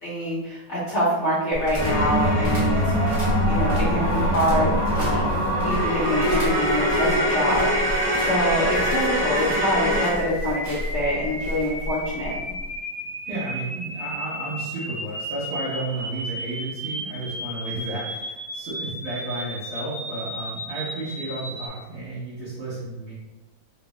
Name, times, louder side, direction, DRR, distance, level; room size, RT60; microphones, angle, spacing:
voice 1, 0.0-12.4, equal, 75° left, -8 dB, 0.6 m, -26 dB
sound 1, 1.5-12.8, equal, 45° right, 0.5 m, -31 dB
sound 2, 1.8-10.1, equal, 20° right, 0.8 m, -23 dB
sound 3, 2.7-21.7, right 1 dB, 65° right, 1.8 m, -33 dB
voice 2, 13.0-23.1, right 2 dB, 85° right, -11 dB, 2.1 m, -32 dB
4.4 x 2.1 x 2.9 m, 1.1 s
omnidirectional pair, 2.3 m